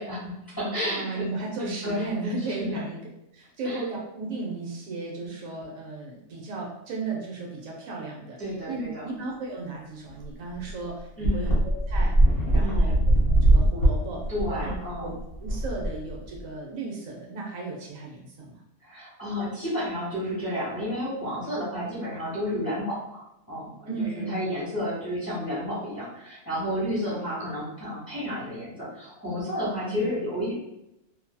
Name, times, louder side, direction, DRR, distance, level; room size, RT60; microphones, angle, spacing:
voice 1, 0.0-1.3 1.6-2.7 3.6-3.8 8.4-9.1 11.2-11.5 12.6-13.0 14.3-15.1 18.8-30.5, left 1 dB, 15° left, -10 dB, 1.2 m, -31 dB
voice 2, 0.8-3.0 3.3-8.4 8.7-12.2 12.5-13.0 13.2-14.2 14.6-14.7 15.0-15.1 15.4-18.6 21.7-21.8 23.8-24.4 27.1-27.5 29.7-30.2, right 3 dB, 75° right, -2 dB, 1.0 m, -35 dB
sound 1, 10.2-10.3 10.6-10.7 11.2-16.4, right 1 dB, 50° left, 0.9 m, -21 dB
2.6 x 2.6 x 2.2 m, 0.86 s
omnidirectional pair, 1.5 m